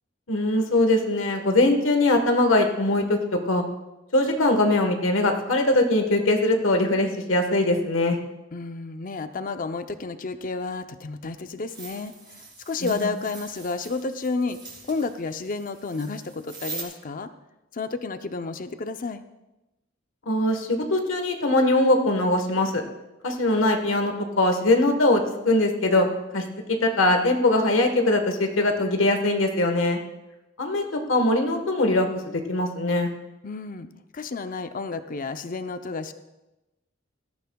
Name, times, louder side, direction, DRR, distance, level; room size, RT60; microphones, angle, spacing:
voice 1, 0.3-3.2 3.4-3.6 4.1-8.2 12.8-13.1 20.3-22.8 23.2-26.1 26.3-30.0 30.6-33.1, left 2 dB, 85° left, 4 dB, 1.3 m, -22 dB
voice 2, 8.5-14.6 14.9-17.3 17.7-19.2 33.4-33.9 34.1-36.1, left 3 dB, 45° left, 9 dB, 0.6 m, -31 dB
sound 1, 11.7-16.8, right 4 dB, 25° right, 2.7 m, -42 dB
17.5 x 13.0 x 2.3 m, 1.0 s
head